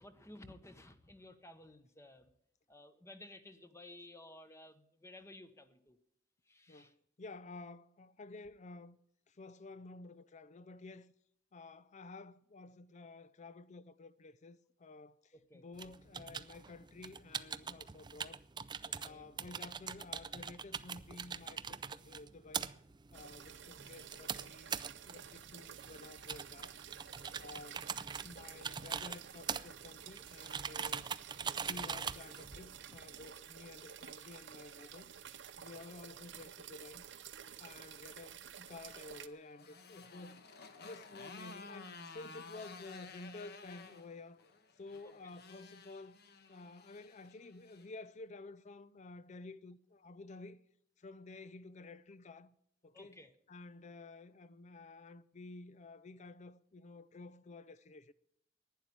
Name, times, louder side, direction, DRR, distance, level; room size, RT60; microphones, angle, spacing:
voice 1, 0.0-2.3 2.7-6.0 6.5-6.9 15.5-15.6 18.8-19.3 27.2-27.5 28.4-28.6 52.9-53.3, left 1 dB, 15° left, 1.0 m, -55 dB
voice 2, 6.7-9.0 9.3-11.1 11.5-18.4 19.0-22.7 23.1-26.8 27.4-27.9 28.2-31.1 31.5-35.1 35.6-37.1 37.6-40.5 40.8-44.4 44.8-46.2 46.5-50.6 51.0-52.5 52.8-53.2 53.5-58.1, left 3 dB, 40° left, 0.5 m, -52 dB
sound 1, 15.8-33.3, right 6 dB, 25° right, 0.4 m, -43 dB
sound 2, 23.1-39.3, right 9 dB, 70° right, 0.8 m, -52 dB
Motorcycle, 38.5-47.9, left 4 dB, 60° left, 1.2 m, -54 dB
11.5 x 9.9 x 9.4 m
head